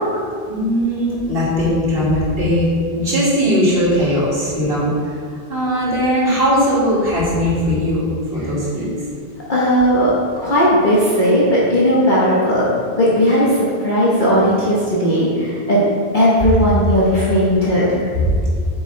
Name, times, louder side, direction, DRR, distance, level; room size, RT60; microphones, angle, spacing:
voice 1, 0.5-2.7 2.9-4.9 5.5-8.0 8.3-8.9 18.1-18.3, equal, 65° right, -7 dB, 2.5 m, -18 dB
voice 2, 9.5-12.6 13.0-15.8 16.1-18.0, equal, 50° left, -7 dB, 1.3 m, -16 dB
8.3 x 6.2 x 3.3 m, 2.1 s
omnidirectional pair, 1.0 m